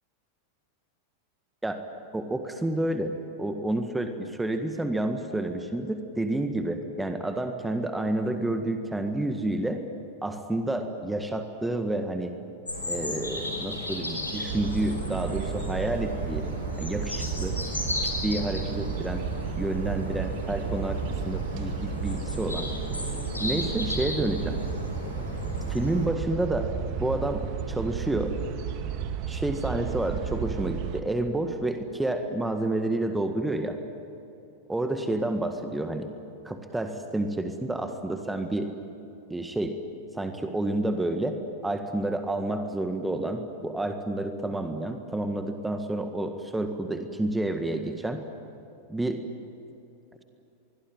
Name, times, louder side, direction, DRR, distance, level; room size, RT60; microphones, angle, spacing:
voice 1, 2.1-3.1 3.4-9.8 10.2-12.4 12.9-16.5 16.8-17.6 18.0-19.2 19.6-22.7 23.4-24.6 25.7-28.4 29.3-33.8 34.7-36.1 36.5-38.7 39.3-39.8 40.1-48.2 48.9-49.2, right 1 dB, 5° right, 6 dB, 1.7 m, -29 dB
sound 1, 12.7-26.0, left 1 dB, 80° left, 5.2 m, -35 dB
sound 2, 14.5-31.0, right 7 dB, 45° right, 1.9 m, -33 dB
25.5 x 22.0 x 9.2 m, 2.8 s
figure-of-eight pair, 90°, 0 cm